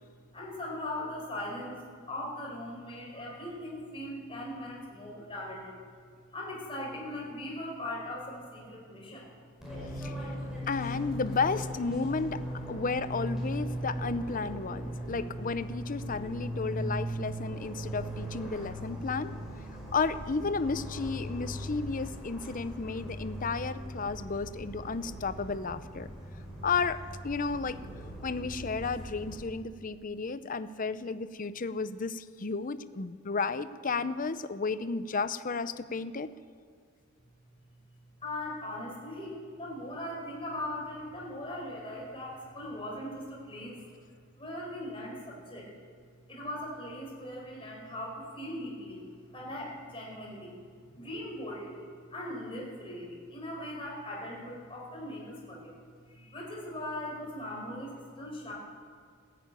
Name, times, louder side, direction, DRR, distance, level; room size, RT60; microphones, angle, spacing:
voice 1, 0.3-5.8 6.3-9.3 38.2-43.8 44.3-45.7 46.3-50.6 50.9-55.8 56.1-58.5, left 1 dB, 25° left, -2 dB, 5.0 m, -39 dB
Fixed-wing aircraft airplane, 9.6-29.3, equal, 5° right, 5.4 m, -39 dB
voice 2, 10.0-10.4 10.7-12.4 12.7-19.3 19.9-26.1 26.6-27.8 28.2-36.3, left 4 dB, 40° left, 13 dB, 0.7 m, -33 dB
15.5 x 10.5 x 9.0 m, 2.2 s
head